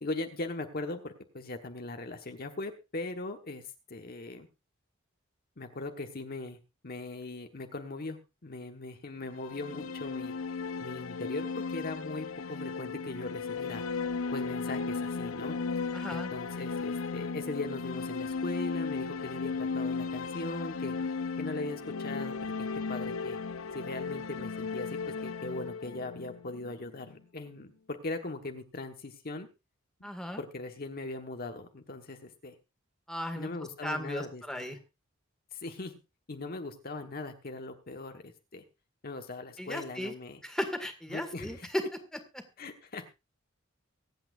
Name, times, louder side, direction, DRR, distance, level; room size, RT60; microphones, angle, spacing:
voice 1, 0.0-3.6 3.9-4.5 5.6-6.6 6.8-10.3 10.8-13.8 14.3-15.6 16.1-20.9 21.4-23.4 23.7-29.5 30.0-30.1 30.4-32.5 33.4-34.8 35.5-36.0 36.3-38.6 39.0-40.4 41.1-41.7 42.6-43.1, left 2 dB, 50° left, 5 dB, 1.3 m, -39 dB
sound 1, 9.2-27.2, left 4 dB, 80° left, 0.7 m, -35 dB
voice 2, 15.9-16.3 30.0-30.4 33.1-33.5 33.8-34.8 39.6-40.1 40.4-41.8 42.3-42.4, equal, 5° left, 5 dB, 1.9 m, -36 dB
24.0 x 8.7 x 2.5 m, 0.27 s
head